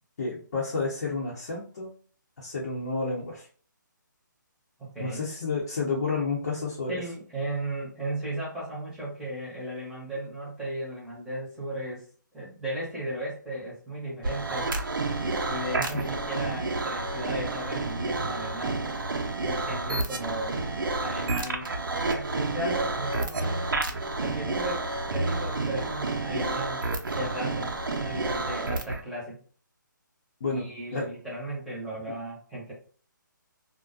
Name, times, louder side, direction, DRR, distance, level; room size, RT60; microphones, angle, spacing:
voice 1, 0.2-1.9 2.4-3.5 5.0-7.0 15.9-16.1 30.4-31.1, left 4 dB, 50° left, -5 dB, 0.7 m, -30 dB
voice 2, 4.8-5.2 6.9-12.1 12.3-14.7 15.5-18.8 19.4-20.6 21.0-23.6 24.2-26.8 27.1-29.4 30.5-32.7, right 1 dB, ahead, -8 dB, 0.8 m, -36 dB
sound 1, 14.2-29.0, right 3 dB, 90° right, 0.5 m, -30 dB
2.4 x 2.1 x 2.4 m, 0.42 s
hypercardioid pair, 160°, 11 cm